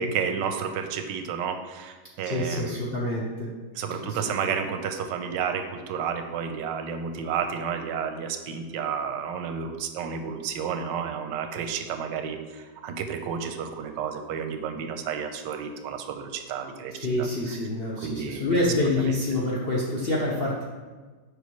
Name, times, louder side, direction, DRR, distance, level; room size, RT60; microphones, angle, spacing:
voice 1, 0.0-2.8 3.8-16.9 17.2-17.3 18.0-18.4, right 7 dB, 90° right, 7 dB, 1.3 m, -31 dB
voice 2, 2.2-3.5 3.9-4.3 16.9-20.6, left 1 dB, 60° left, -4 dB, 0.6 m, -27 dB
6.5 x 5.2 x 3.1 m, 1.4 s
omnidirectional pair, 1.9 m